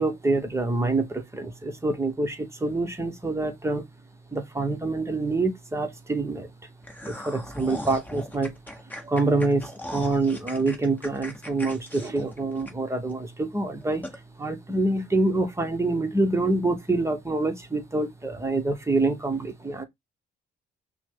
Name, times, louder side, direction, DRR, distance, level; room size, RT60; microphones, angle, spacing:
voice 1, 0.0-3.9 4.3-6.5 7.0-8.5 9.0-14.1 14.4-19.8, right 2 dB, 15° right, 1.0 m, -26 dB
sound 1, 6.8-13.1 13.5-13.6 14.0-14.2, left 1 dB, 10° left, 1.1 m, -39 dB
5.9 x 2.2 x 3.7 m
cardioid pair, 90°, 20 cm